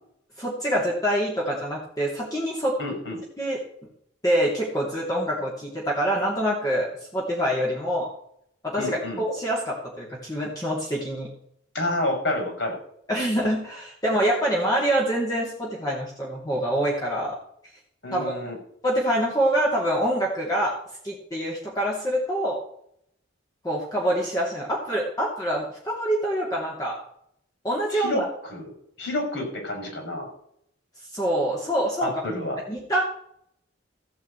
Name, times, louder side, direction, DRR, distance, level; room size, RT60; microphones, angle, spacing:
voice 1, 0.4-2.7 3.4-3.6 4.2-6.9 7.1-8.1 8.6-11.3 13.1-17.4 18.1-18.2 18.8-20.7 21.0-22.6 23.6-27.0 27.6-28.3 31.1-32.1 32.7-33.0, right 1 dB, 20° left, -4 dB, 2.8 m, -25 dB
voice 2, 2.8-3.2 8.8-9.2 11.7-12.8 18.0-18.6 27.9-28.2 28.5-28.7 29.0-30.3 32.0-32.6, left 1 dB, 60° left, 2 dB, 6.2 m, -29 dB
15.0 x 5.6 x 8.3 m, 0.69 s
head